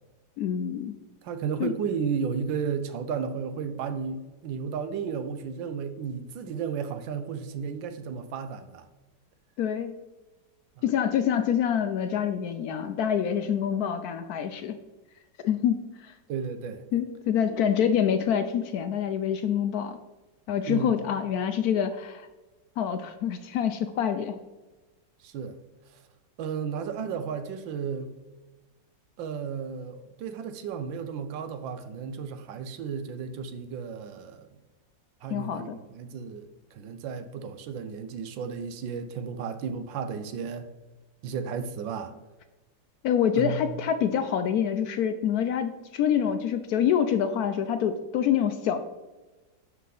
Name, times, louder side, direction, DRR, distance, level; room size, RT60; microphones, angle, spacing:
voice 1, 0.4-0.9 1.6-1.7 9.6-9.9 10.8-14.8 15.4-16.1 16.9-20.0 20.5-22.3 22.8-24.4 35.3-35.8 43.0-48.8, left 8 dB, 70° left, 9 dB, 0.9 m, -26 dB
voice 2, 1.2-8.9 16.3-16.8 20.7-21.0 25.2-25.6 25.9-26.0 26.4-28.1 29.2-34.5 35.2-40.7 41.2-42.1 43.4-43.8, right 6 dB, 90° right, 10 dB, 1.5 m, -33 dB
11.0 x 5.6 x 3.9 m, 1.2 s
omnidirectional pair, 2.0 m